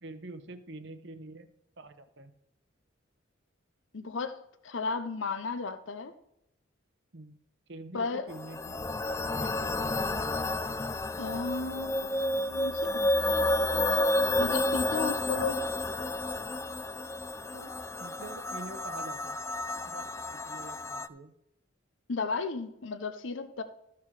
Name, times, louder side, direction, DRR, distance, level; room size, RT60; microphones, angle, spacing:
voice 1, 0.0-1.5 1.8-2.3 7.1-7.4 7.7-8.7 9.3-10.2 17.5-17.7 18.0-19.4 19.7-21.3, right 2 dB, 60° right, 10 dB, 1.0 m, -46 dB
voice 2, 3.9-6.1 7.9-8.3 11.2-13.6 14.4-15.6 22.1-23.6, left 4 dB, 70° left, 10 dB, 0.7 m, -34 dB
sound 1, 8.3-21.1, left 1 dB, 15° left, 0.3 m, -31 dB
14.0 x 6.0 x 4.8 m, 0.82 s
head